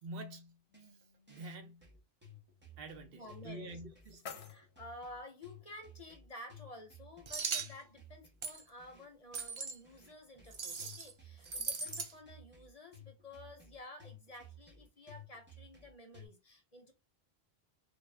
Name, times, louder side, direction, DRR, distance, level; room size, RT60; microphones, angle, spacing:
voice 1, 0.0-1.0 1.3-1.9 2.8-4.3, right 1 dB, 65° right, 0.8 m, -47 dB
sound 1, 0.7-16.3, left 2 dB, 10° right, 0.9 m, -57 dB
voice 2, 3.1-3.8 4.5-16.9, left 2 dB, 45° left, 0.7 m, -52 dB
sound 2, 3.5-5.5, left 6 dB, 90° left, 0.9 m, -52 dB
sound 3, 7.3-7.7 8.4-8.6 9.3-9.8 10.5-11.1 11.4-12.1, right 5 dB, 50° right, 0.3 m, -38 dB
2.5 x 2.1 x 3.2 m
omnidirectional pair, 1.1 m